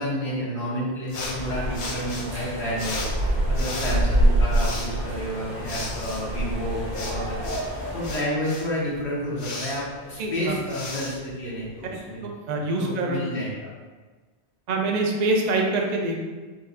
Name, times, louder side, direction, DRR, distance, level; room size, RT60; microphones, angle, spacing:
voice 1, 0.0-3.0 3.5-7.5 7.9-12.2 12.8-13.7, equal, 75° left, -6 dB, 1.3 m, -30 dB
sound 1, 1.1-12.0, left 2 dB, 50° left, 0.3 m, -37 dB
sound 2, 1.2-8.2, right 1 dB, 75° right, 1.7 m, -26 dB
voice 2, 10.2-10.5 11.9-13.2 14.7-16.2, right 2 dB, 55° right, 1 dB, 0.5 m, -25 dB
4.6 x 2.3 x 2.5 m, 1.3 s
omnidirectional pair, 1.1 m